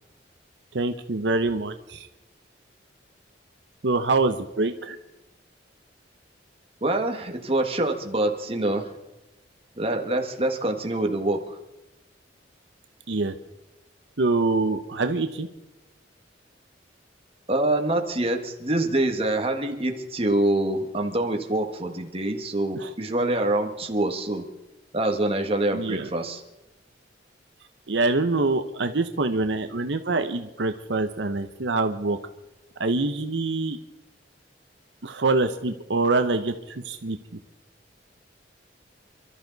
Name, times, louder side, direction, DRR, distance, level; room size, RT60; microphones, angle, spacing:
voice 1, 0.7-2.1 3.8-5.0 13.1-13.3 14.2-15.5 22.8-22.9 25.7-26.1 27.9-32.2 32.8-33.8 35.0-37.2, right 3 dB, 75° right, 8 dB, 0.9 m, -25 dB
voice 2, 6.8-8.9 9.8-11.6 17.5-24.4 24.9-26.4, right 1 dB, 30° right, 3 dB, 1.7 m, -25 dB
27.5 x 12.5 x 4.0 m, 1.0 s
head